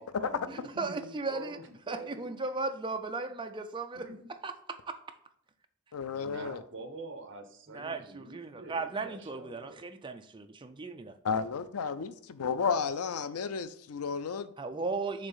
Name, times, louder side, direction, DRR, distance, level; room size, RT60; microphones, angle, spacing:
voice 1, 0.0-2.4 4.0-4.3 6.1-9.8, right 2 dB, 55° right, 1.1 m, -45 dB
voice 2, 0.5-1.6 1.9-5.0 7.7-11.2 14.6-15.3, right 3 dB, 20° right, 0.5 m, -36 dB
voice 3, 5.9-6.6 11.2-14.5, left 5 dB, 85° left, 0.5 m, -32 dB
6.6 x 3.5 x 5.6 m
head